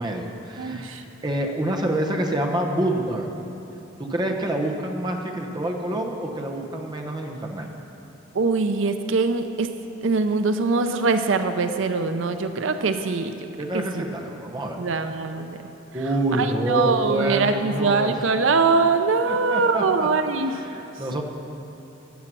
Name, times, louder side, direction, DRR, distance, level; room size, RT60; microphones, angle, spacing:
voice 1, 0.0-3.3 4.0-7.7 13.6-14.8 15.9-18.1 19.2-20.1 20.5-21.2, right 1 dB, 20° right, 1 dB, 0.9 m, -27 dB
voice 2, 0.6-1.0 8.3-9.7 10.0-13.3 13.7-14.0 14.8-15.6 16.3-20.5, right 4 dB, 80° right, 8 dB, 0.5 m, -22 dB
12.5 x 7.5 x 6.1 m, 2.9 s
head